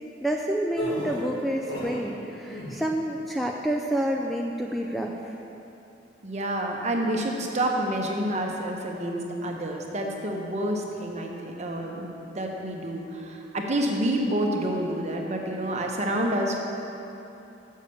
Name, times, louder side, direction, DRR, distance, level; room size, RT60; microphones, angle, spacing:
voice 1, 0.2-5.3, right 1 dB, ahead, 0 dB, 0.4 m, -28 dB
sound 1, 0.8-2.1 2.4-2.9, left 1 dB, 85° left, 2.2 m, -34 dB
voice 2, 6.2-16.6, right 1 dB, 40° right, 1 dB, 1.0 m, -28 dB
6.9 x 6.5 x 7.0 m, 2.8 s
head